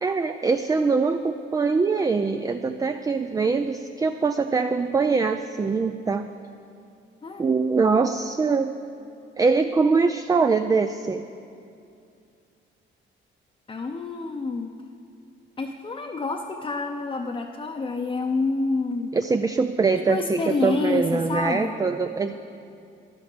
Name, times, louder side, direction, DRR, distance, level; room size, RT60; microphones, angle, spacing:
voice 1, 0.0-6.3 7.4-8.8 9.4-11.2 19.1-22.4, right 4 dB, 15° right, 8 dB, 0.4 m, -23 dB
voice 2, 13.7-14.8 15.6-19.1 20.1-21.8, left 3 dB, 25° left, 1 dB, 0.7 m, -28 dB
11.0 x 11.0 x 6.7 m, 2.5 s
cardioid pair, 115°, 20 cm